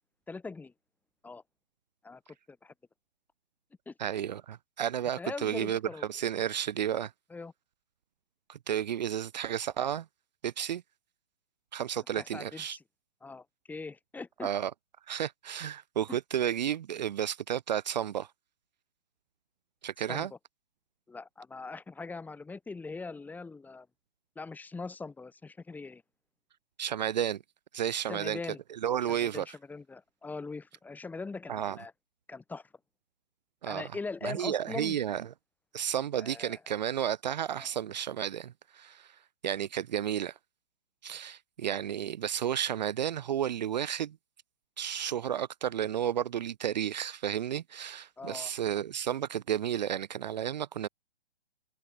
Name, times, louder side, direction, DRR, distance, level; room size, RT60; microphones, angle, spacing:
voice 1, 0.3-0.7 1.2-1.4 2.0-2.2 2.5-2.7 3.9-4.0 5.2-6.0 7.3-7.5 12.1-12.8 13.2-14.5 16.1-16.2 20.1-20.3 21.1-23.9 24.4-26.0 28.1-28.6 29.2-31.9 32.3-32.7 33.6-35.0 36.2-36.6 37.5-37.7 48.2-48.5, left 4 dB, 5° left, 2.8 m, -41 dB
voice 2, 4.0-7.1 8.5-10.1 10.4-10.8 11.7-12.8 14.4-14.7 15.1-18.3 19.8-20.3 26.8-27.4 27.7-28.4 28.7-29.6 31.5-31.8 33.6-33.9 34.2-35.3 35.7-40.4 41.0-44.2 44.8-50.9, right 10 dB, 45° right, 0.8 m, -32 dB
figure-of-eight pair, 135°, 31 cm